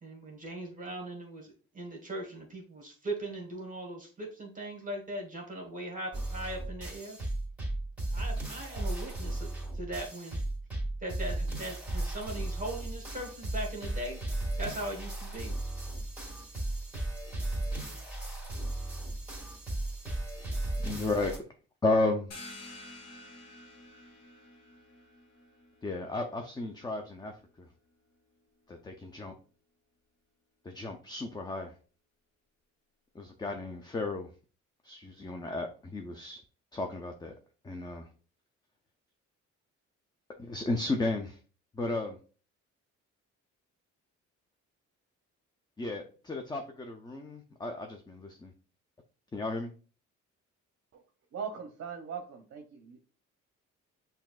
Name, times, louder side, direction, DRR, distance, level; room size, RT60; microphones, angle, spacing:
voice 1, 0.0-7.2 8.1-9.5 9.7-10.4 11.0-14.2 14.6-15.5, right 1 dB, 25° right, 1.3 m, -39 dB
sound 1, 6.1-21.4, right 1 dB, 5° right, 1.9 m, -35 dB
voice 2, 20.8-21.4 21.8-22.3 25.8-27.3 28.7-29.3 30.6-31.7 33.2-34.3 34.8-36.4 36.7-37.3 37.6-38.1 40.4-41.4 41.7-42.2 45.8-48.5 49.3-49.7, left 2 dB, 15° left, 0.5 m, -33 dB
sound 2, 22.3-27.7, left 2 dB, 60° left, 1.4 m, -51 dB
voice 3, 51.3-53.0, right 6 dB, 50° right, 0.7 m, -40 dB
5.9 x 2.7 x 2.4 m
cardioid pair, 90°, 30 cm